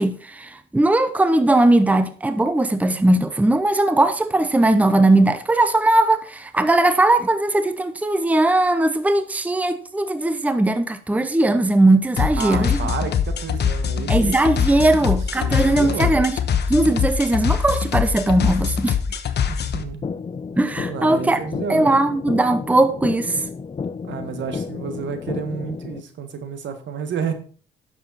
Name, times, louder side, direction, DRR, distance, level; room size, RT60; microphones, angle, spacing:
voice 1, 0.0-12.8 14.1-16.4 16.7-19.0 20.6-21.4 21.7-23.4, right 2 dB, 5° right, 0.8 m, -19 dB
sound 1, 12.2-19.8, left 7 dB, 60° left, 1.1 m, -23 dB
voice 2, 12.3-14.4 15.4-16.2 19.5-20.1 20.8-22.0 24.0-27.3, right 6 dB, 70° right, 1.7 m, -30 dB
sound 2, 20.0-26.0, left 5 dB, 30° left, 0.6 m, -31 dB
10.5 x 6.9 x 4.2 m
cardioid pair, 90°, 20 cm